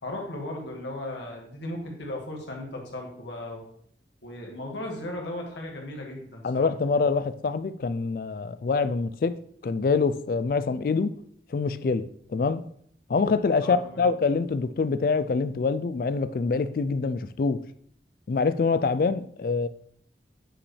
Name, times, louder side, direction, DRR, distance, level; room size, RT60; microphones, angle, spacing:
voice 1, 0.0-3.6 4.2-6.7 13.6-14.1, left 1 dB, 85° left, 1.9 m, -36 dB
voice 2, 6.4-9.4 9.6-11.1 11.5-12.6 13.1-17.6 18.3-19.7, left 4 dB, 55° left, 0.3 m, -25 dB
8.6 x 5.1 x 3.3 m
head